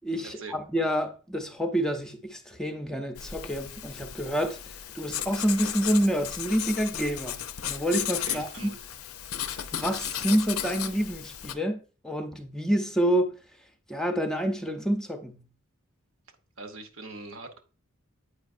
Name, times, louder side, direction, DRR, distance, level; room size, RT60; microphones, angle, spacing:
voice 1, 0.0-4.6 4.9-8.7 9.7-11.8 12.0-13.3 13.9-15.4, equal, 5° left, 0.6 m, -28 dB
Writing, 3.2-11.5, left 10 dB, 90° left, 0.5 m, -35 dB
voice 2, 8.2-8.8 16.6-17.6, right 3 dB, 70° right, 0.9 m, -41 dB
8.1 x 5.1 x 2.5 m
head